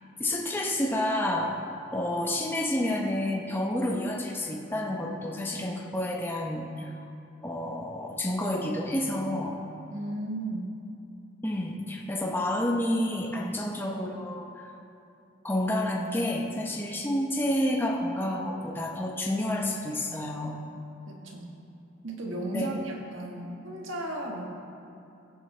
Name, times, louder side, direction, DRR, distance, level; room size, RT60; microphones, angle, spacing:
voice 1, 0.2-1.6 1.9-6.9 7.4-9.6 11.4-14.5 15.4-20.6 22.5-22.7, left 1 dB, 10° left, 0 dB, 0.7 m, -29 dB
voice 2, 9.9-10.8 21.1-21.5 22.0-24.4, right 1 dB, 80° right, -1 dB, 1.6 m, -35 dB
14.5 x 9.3 x 3.3 m, 2.7 s
head